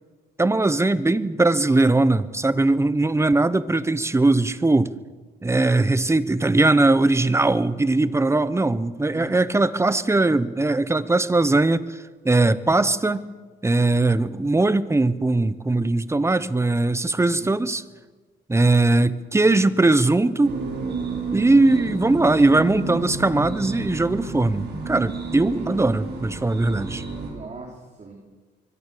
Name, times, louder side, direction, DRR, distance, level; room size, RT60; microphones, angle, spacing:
voice 1, 0.4-4.9 5.4-13.2 13.6-17.8 18.5-20.6 21.3-27.1, right 2 dB, 15° right, 15 dB, 1.0 m, -20 dB
voice 2, 9.1-9.5 17.4-17.5 25.5-25.9 27.2-28.1, right 3 dB, 35° right, 1 dB, 3.8 m, -38 dB
rafaela AR, 20.4-27.3, right 3 dB, 60° right, 6.3 m, -31 dB
23.5 x 17.0 x 6.9 m, 1.4 s
cardioid pair, 90°, 20 cm